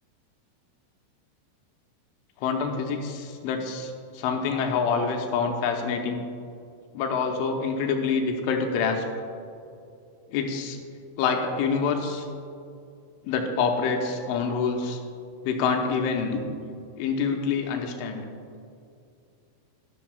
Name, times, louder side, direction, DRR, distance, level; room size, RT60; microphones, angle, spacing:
voice 1, 2.4-6.2 6.9-9.1 10.3-10.8 11.2-12.3 13.2-15.0 15.4-16.4 17.0-18.3, left 5 dB, 85° left, 3 dB, 3.1 m, -26 dB
12.5 x 12.0 x 2.3 m, 2.4 s
omnidirectional pair, 5.6 m